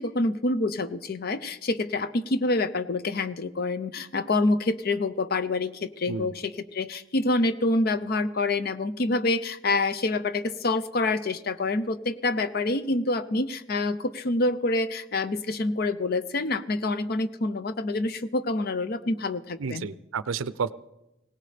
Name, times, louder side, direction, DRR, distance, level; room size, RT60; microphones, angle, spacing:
voice 1, 0.0-19.9, left 2 dB, 50° left, 13 dB, 0.6 m, -27 dB
voice 2, 19.6-20.7, right 5 dB, 85° right, 17 dB, 0.5 m, -31 dB
20.5 x 17.5 x 3.4 m, 0.96 s
head